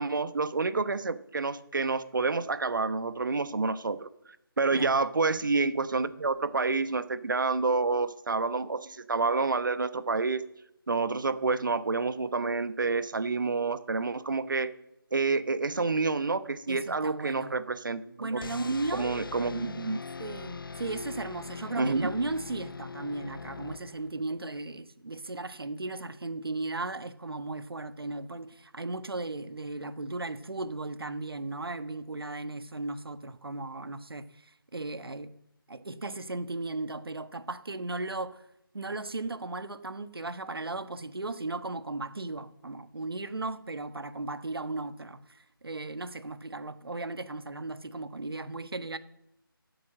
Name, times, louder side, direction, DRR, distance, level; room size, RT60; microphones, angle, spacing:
voice 1, 0.0-4.1 4.6-10.4 10.9-14.7 15.1-20.0 21.8-22.1, right 4 dB, 60° right, 1.1 m, -28 dB
voice 2, 16.7-17.5 18.2-19.2 20.2-35.3 35.7-38.4 38.7-49.0, right 2 dB, 75° right, 1.4 m, -36 dB
sound 1, 18.4-24.3, left 4 dB, 65° left, 0.5 m, -41 dB
14.0 x 8.5 x 7.5 m
figure-of-eight pair, 165°, 12 cm